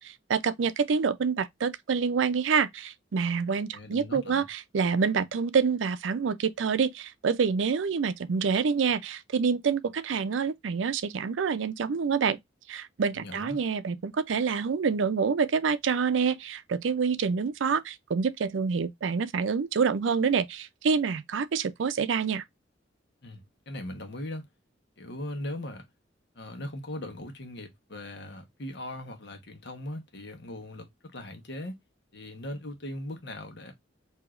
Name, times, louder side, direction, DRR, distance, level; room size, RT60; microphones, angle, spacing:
voice 1, 0.0-12.4 12.7-22.4, right 5 dB, 80° right, 0.4 m, -27 dB
voice 2, 3.7-4.5 13.1-13.6 23.2-23.4 23.7-24.5 25.0-25.8 26.3-31.8 32.1-33.7, left 1 dB, 65° left, 1.1 m, -39 dB
4.8 x 2.8 x 2.4 m
head